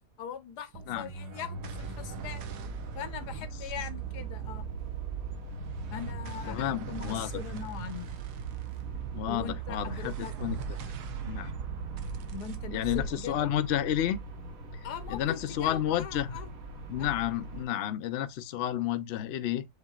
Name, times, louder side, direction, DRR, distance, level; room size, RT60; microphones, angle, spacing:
voice 1, 0.2-2.4 2.9-4.7 5.9-8.1 9.3-10.3 12.3-13.5 14.8-16.5 17.0-17.1, left 8 dB, 85° left, 1.3 m, -41 dB
sound 1, 0.7-15.3, right 8 dB, 85° right, 1.2 m, -40 dB
sound 2, 1.5-17.7, right 1 dB, 60° right, 1.5 m, -42 dB
voice 2, 6.5-7.3 9.1-10.1 10.4-10.6 11.2-11.5 12.7-14.2 15.1-16.4 16.9-19.7, left 11 dB, 65° left, 0.6 m, -31 dB
7.9 x 2.8 x 2.4 m
omnidirectional pair, 1.7 m